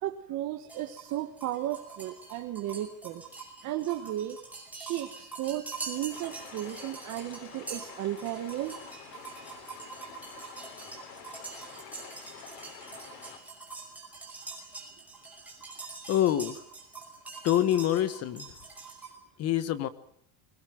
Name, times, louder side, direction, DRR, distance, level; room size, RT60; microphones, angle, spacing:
voice 1, 0.0-3.2 3.6-4.4 4.7-8.8, right 13 dB, 35° right, 4 dB, 1.6 m, -34 dB
sound 1, 0.7-19.1, right 4 dB, 5° right, 5.8 m, -44 dB
sound 2, 6.1-13.4, left 6 dB, 80° left, 7.5 m, -48 dB
voice 2, 16.1-16.6 17.4-18.5 19.4-19.9, left 12 dB, 30° left, 13 dB, 1.4 m, -26 dB
22.5 x 20.0 x 9.4 m, 0.69 s
cardioid pair, 180°, 48 cm